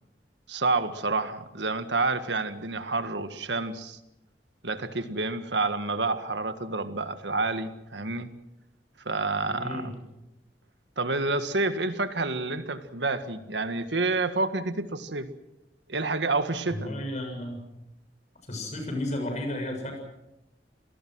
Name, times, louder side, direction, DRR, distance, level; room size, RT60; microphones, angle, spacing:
voice 1, 0.5-4.0 4.6-8.3 9.0-9.9 11.0-15.3 15.9-16.9, right 3 dB, 85° right, 10 dB, 1.7 m, -29 dB
voice 2, 9.5-9.9 16.7-17.6 18.5-20.0, left 1 dB, 40° left, 3 dB, 7.2 m, -33 dB
27.5 x 18.5 x 6.3 m, 0.91 s
head